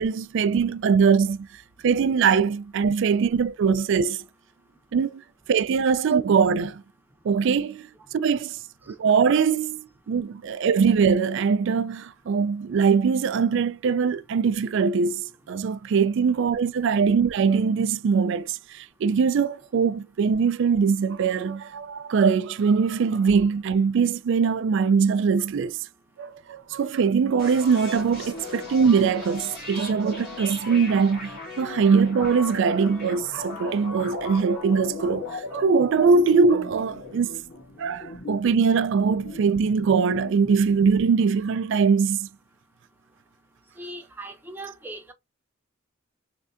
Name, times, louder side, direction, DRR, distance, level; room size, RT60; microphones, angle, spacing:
voice 1, 0.0-1.5 1.8-4.2 4.9-5.2 5.5-6.8 7.2-7.9 8.1-8.6 8.9-25.8 26.2-31.3 31.6-37.4 37.8-42.3, right 5 dB, 65° right, 0.3 m, -22 dB
sound 1, 27.4-41.0, left 3 dB, 50° left, 1.8 m, -38 dB
voice 2, 43.8-45.1, right 1 dB, 10° right, 0.8 m, -39 dB
3.6 x 3.3 x 2.5 m
head